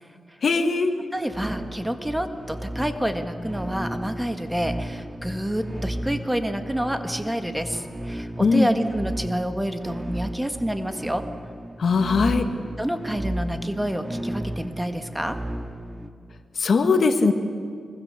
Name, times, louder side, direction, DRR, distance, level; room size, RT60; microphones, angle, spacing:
voice 1, 0.4-0.9 8.4-8.7 11.8-12.5 16.6-17.3, left 4 dB, 65° left, 7 dB, 1.7 m, -20 dB
voice 2, 1.1-11.3 12.8-15.4, equal, 10° right, 7 dB, 1.6 m, -28 dB
sound 1, 1.3-16.1, right 1 dB, 25° right, 1.9 m, -34 dB
25.5 x 22.5 x 6.9 m, 2.2 s
cardioid pair, 75°, 0 cm